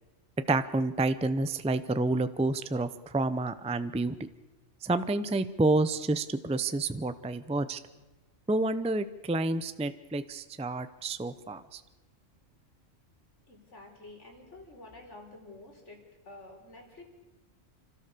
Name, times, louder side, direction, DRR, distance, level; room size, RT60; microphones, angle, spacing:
voice 1, 0.5-4.3 4.8-7.8 8.5-11.8, right 2 dB, 5° right, 12 dB, 0.5 m, -29 dB
voice 2, 13.5-16.0 16.2-17.1, left 2 dB, 65° left, 2 dB, 4.4 m, -49 dB
29.5 x 13.5 x 6.8 m, 1.2 s
omnidirectional pair, 1.3 m